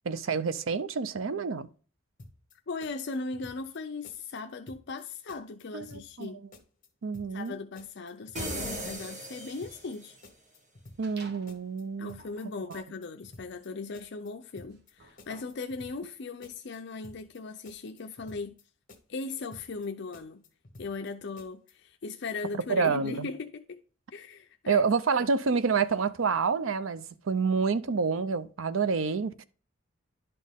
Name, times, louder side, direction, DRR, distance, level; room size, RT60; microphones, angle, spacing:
voice 1, 0.0-1.7 5.7-6.3 7.0-7.5 11.0-12.2 22.7-23.3 24.7-29.4, right 5 dB, 90° right, 0.6 m, -28 dB
sound 1, 2.2-2.6 2.8-3.8 4.0-4.4 4.7-5.0 5.3-6.3 6.5-6.9 7.1-7.5 7.8-8.7 9.0-9.4 9.6-10.0 10.2-11.2 11.5-11.8 12.1-12.4 12.7-13.7 13.9-14.3 14.6-14.9 15.2-16.2 16.4-16.8 17.0-17.4 17.7-18.6 18.9-19.3 19.5-19.9 20.1-21.1 21.4-21.7, left 1 dB, 45° left, 1.3 m, -52 dB
voice 2, 2.7-6.4 7.3-10.2 12.0-18.6 19.1-20.4 20.8-23.8 24.1-24.8, left 4 dB, 60° left, 0.5 m, -38 dB
sound 2, 8.4-10.2, right 1 dB, 40° right, 1.7 m, -37 dB
sound 3, 11.0-11.6 12.1-15.7, right 3 dB, 60° right, 1.3 m, -53 dB
11.0 x 4.3 x 3.5 m
head